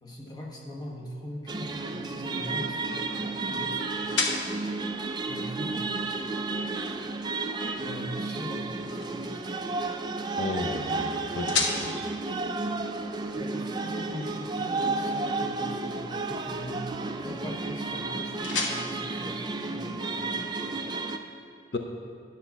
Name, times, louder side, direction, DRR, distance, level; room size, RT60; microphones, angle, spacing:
voice 1, 0.0-4.1 5.3-6.0 7.8-9.4 13.3-16.9 17.2-20.8, equal, 20° left, -1 dB, 1.2 m, -41 dB
sound 1, 1.4-20.3, left 4 dB, 85° left, 1.1 m, -39 dB
sound 2, 1.5-21.2, right 3 dB, 25° right, 0.4 m, -32 dB
voice 2, 10.4-12.0 21.7-21.8, left 2 dB, 65° left, 3 dB, 0.6 m, -34 dB
10.0 x 5.8 x 7.1 m, 2.3 s
head